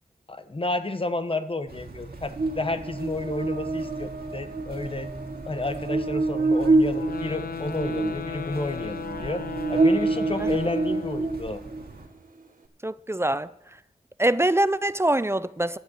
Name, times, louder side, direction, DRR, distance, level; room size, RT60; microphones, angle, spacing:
voice 1, 0.3-5.1 5.5-9.4 9.7-11.6, left 2 dB, 35° left, 1.1 m, -31 dB
sound 1, 1.7-12.1, right 2 dB, 75° right, 2.3 m, -42 dB
Buzz, 2.4-11.8, right 3 dB, 60° right, 1.4 m, -27 dB
sound 2, 6.9-11.4, left 7 dB, 70° left, 0.5 m, -36 dB
voice 2, 12.8-13.5 14.2-15.8, right 1 dB, 15° right, 0.4 m, -24 dB
11.5 x 7.1 x 8.7 m
wide cardioid pair, 65°, 16 cm